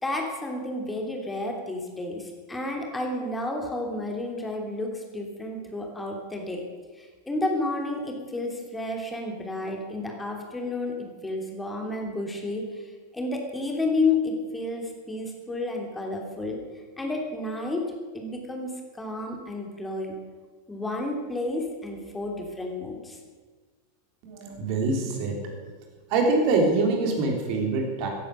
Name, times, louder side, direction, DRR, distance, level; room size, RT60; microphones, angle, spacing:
voice 1, 0.0-6.6 7.0-12.8 13.1-16.6 17.0-17.9 18.1-20.1 20.7-23.2, left 2 dB, 10° left, 1 dB, 3.1 m, -31 dB
voice 2, 24.2-25.5 26.1-28.1, right 3 dB, 45° right, 2 dB, 3.6 m, -24 dB
16.5 x 11.0 x 6.6 m, 1.4 s
figure-of-eight pair, 90°, 0 cm